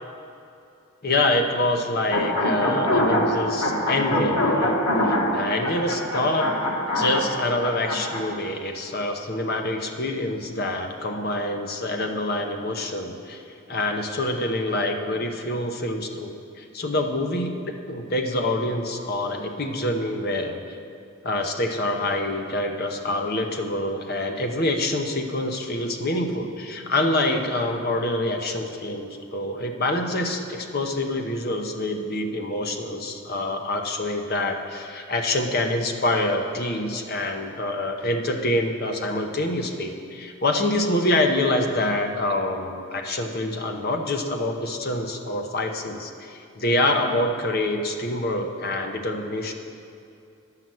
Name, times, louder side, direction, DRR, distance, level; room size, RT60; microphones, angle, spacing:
voice 1, 1.0-4.8 5.0-6.5 6.9-13.4 13.7-20.6 21.2-49.5, left 1 dB, 45° left, 4 dB, 0.9 m, -26 dB
sound 1, 2.1-8.2, left 1 dB, 85° left, 1.7 m, -24 dB
10.5 x 5.8 x 7.7 m, 2.5 s
head